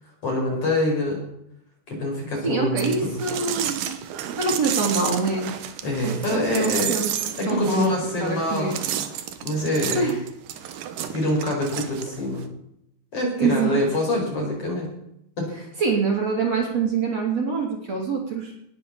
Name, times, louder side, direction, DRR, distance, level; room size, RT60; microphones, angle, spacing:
voice 1, 0.2-1.2 1.9-3.1 5.8-6.9 7.4-8.8 9.4-10.1 11.1-12.5 13.1-14.9 15.4-15.5, left 1 dB, 40° left, -1 dB, 6.0 m, -25 dB
voice 2, 2.4-4.0 4.4-5.5 6.0-7.1 7.5-7.9 8.2-8.7 9.9-10.2 13.4-13.8 15.8-18.5, right 4 dB, 45° right, -1 dB, 4.1 m, -25 dB
sound 1, 2.8-12.5, right 10 dB, 70° right, 2.6 m, -31 dB
19.5 x 9.1 x 7.1 m, 0.77 s
omnidirectional pair, 4.4 m